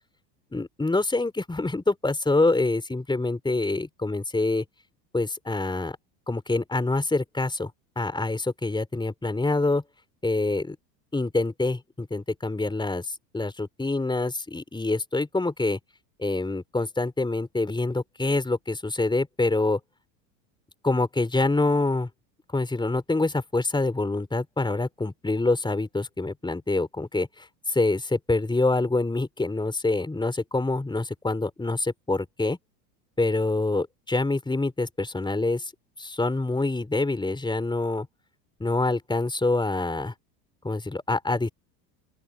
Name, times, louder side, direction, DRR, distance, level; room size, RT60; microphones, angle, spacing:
voice 1, 0.5-4.6 5.1-6.0 6.3-7.7 8.0-9.8 10.2-10.8 11.1-15.8 16.2-19.8 20.8-22.1 22.5-32.6 33.2-35.7 36.0-38.1 38.6-40.1 40.6-41.5, left 2 dB, 10° left, 4.2 m, -26 dB
open air
hypercardioid pair, 85°, 50 cm